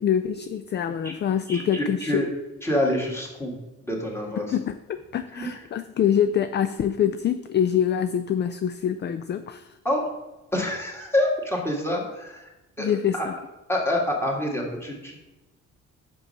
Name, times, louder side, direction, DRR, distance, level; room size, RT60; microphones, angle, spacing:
voice 1, 0.0-2.3 4.4-9.7 12.8-13.3, left 9 dB, 35° left, 10 dB, 0.4 m, -25 dB
voice 2, 1.5-2.3 2.6-3.6 3.8-4.6 5.3-5.6 9.8-10.1 10.5-12.5 12.8-13.3 13.7-15.2, left 1 dB, 10° left, -1 dB, 2.0 m, -27 dB
5.6 x 5.4 x 5.5 m, 1.0 s
cardioid pair, 90°, 30 cm